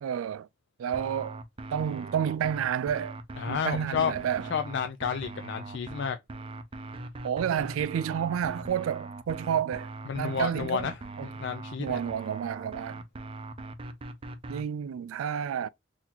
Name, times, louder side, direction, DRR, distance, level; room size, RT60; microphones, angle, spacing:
voice 1, 0.0-0.5 0.8-1.4 1.7-3.2 3.5-4.5 7.2-9.9 10.2-10.9 11.2-11.3 11.8-13.0 14.5-15.7, right 8 dB, 90° right, 0.3 m, -30 dB
sound 1, 0.9-14.6, right 2 dB, 25° right, 0.5 m, -41 dB
voice 2, 3.4-4.1 4.5-6.2 10.1-10.9 11.2-12.0, left 7 dB, 60° left, 0.3 m, -31 dB
4.0 x 2.8 x 2.7 m
head